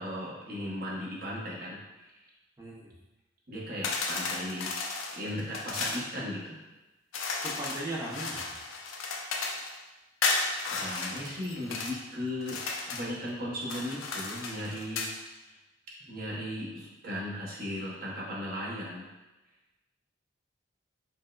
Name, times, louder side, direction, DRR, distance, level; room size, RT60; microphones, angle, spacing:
voice 1, 0.0-2.1 3.5-4.9 5.1-6.6 10.7-12.6 12.9-15.1 15.4-15.5 16.1-19.1, left 1 dB, 45° right, -5 dB, 0.8 m, -37 dB
voice 2, 2.6-2.9 7.4-8.8, right 1 dB, 15° right, -5 dB, 0.5 m, -38 dB
sound 1, 3.8-6.0 7.1-9.7 10.2-12.0 12.4-13.1 13.6-15.1, left 4 dB, 85° left, 0.4 m, -34 dB
4.3 x 2.1 x 2.2 m, 1.0 s
head